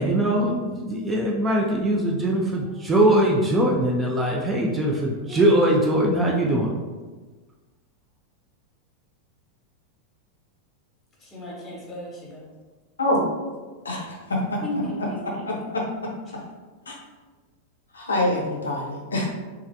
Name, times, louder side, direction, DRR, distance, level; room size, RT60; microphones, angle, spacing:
voice 1, 0.0-6.8, right 1 dB, 15° right, -2 dB, 0.4 m, -21 dB
voice 2, 11.2-12.4 14.6-15.5, left 1 dB, 20° left, -4 dB, 1.0 m, -34 dB
voice 3, 13.8-14.6 15.0-15.1 15.4-15.8 16.9-17.0 17.9-19.3, left 1 dB, 75° left, -2 dB, 0.5 m, -25 dB
3.1 x 2.3 x 2.5 m, 1.3 s
figure-of-eight pair, 90°, 0 cm